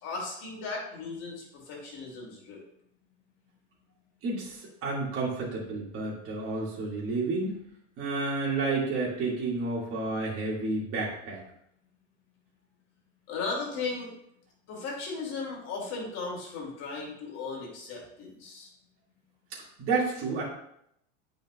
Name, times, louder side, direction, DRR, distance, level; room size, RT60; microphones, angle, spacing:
voice 1, 0.0-2.6 13.3-14.1 14.7-18.7, left 4 dB, 45° left, -2 dB, 2.7 m, -36 dB
voice 2, 4.2-7.6 8.0-11.4 19.8-20.4, right 3 dB, 35° right, -5 dB, 2.3 m, -30 dB
8.7 x 5.1 x 2.4 m, 0.74 s
supercardioid pair, 135°, 38 cm